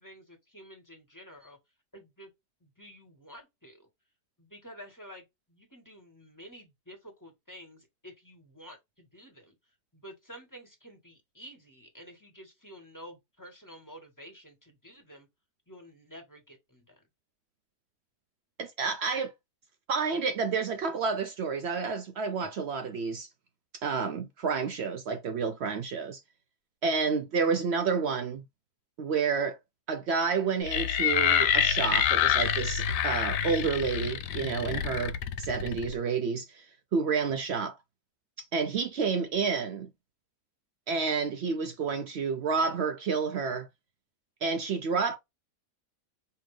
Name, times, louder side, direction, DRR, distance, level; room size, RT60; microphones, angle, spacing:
voice 1, 0.0-1.6 1.9-2.3 2.6-3.9 4.4-9.5 9.9-15.3 15.7-17.0, equal, 10° left, 1.4 m, -50 dB
voice 2, 18.6-19.3 19.9-23.3 23.7-26.2 26.8-28.4 29.0-29.6 29.9-36.7 36.9-37.8 38.4-39.9 40.9-43.7 44.4-45.2, right 5 dB, 90° right, 0.5 m, -30 dB
sound 1, 30.7-35.9, left 9 dB, 90° left, 1.2 m, -27 dB
5.4 x 2.8 x 3.2 m
omnidirectional pair, 1.8 m